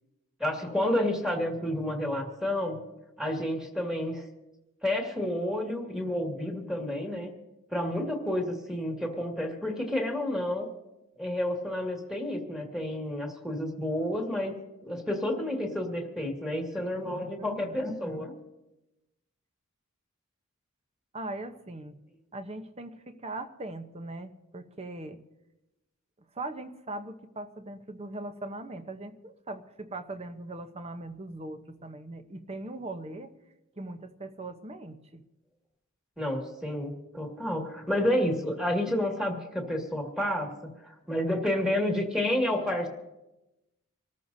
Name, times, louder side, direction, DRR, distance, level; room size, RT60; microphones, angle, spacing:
voice 1, 0.4-2.8 3.2-4.2 4.8-7.3 7.7-10.7 11.2-18.3 36.2-42.9, left 1 dB, 5° right, 0 dB, 2.0 m, -30 dB
voice 2, 17.4-18.0 21.1-22.0 22.3-25.2 26.3-33.3 33.8-35.2, right 2 dB, 25° right, 9 dB, 0.8 m, -40 dB
26.0 x 14.0 x 2.7 m, 0.98 s
head